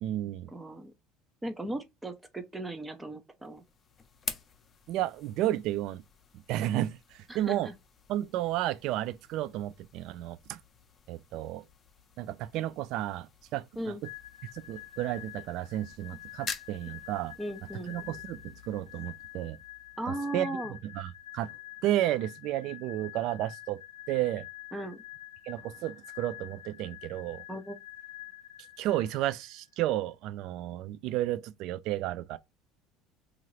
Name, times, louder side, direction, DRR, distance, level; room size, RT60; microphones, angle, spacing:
voice 1, 0.0-0.5 4.9-6.0 6.5-7.7 8.1-10.6 11.1-11.6 12.2-13.9 14.5-17.3 17.9-19.6 20.3-20.6 20.9-21.5 21.8-23.8 24.1-24.5 25.5-27.4 28.8-32.4, right 14 dB, 65° right, 0.3 m, -32 dB
voice 2, 0.5-0.9 1.4-3.6 7.3-7.7 13.8-14.0 17.4-17.9 20.0-20.8 24.7-25.0 27.5-27.8, right 1 dB, 15° right, 0.6 m, -37 dB
sound 1, 3.4-20.3, left 6 dB, 35° left, 0.6 m, -48 dB
sound 2, 14.0-29.6, left 16 dB, 85° left, 0.5 m, -47 dB
2.9 x 2.5 x 3.0 m
supercardioid pair, 100°, 0 cm